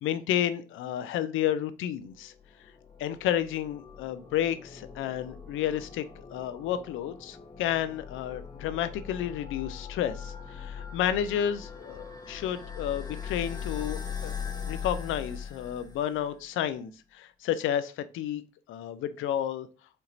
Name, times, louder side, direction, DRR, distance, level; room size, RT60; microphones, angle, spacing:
voice 1, 0.0-2.3 3.0-6.0 6.3-14.4 14.7-18.4 18.7-19.7, left 10 dB, 85° left, 13 dB, 0.5 m, -31 dB
sound 1, 2.2-16.4, left 7 dB, 20° left, 1.1 m, -41 dB
4.4 x 2.9 x 2.5 m, 0.35 s
cardioid pair, 90°, 20 cm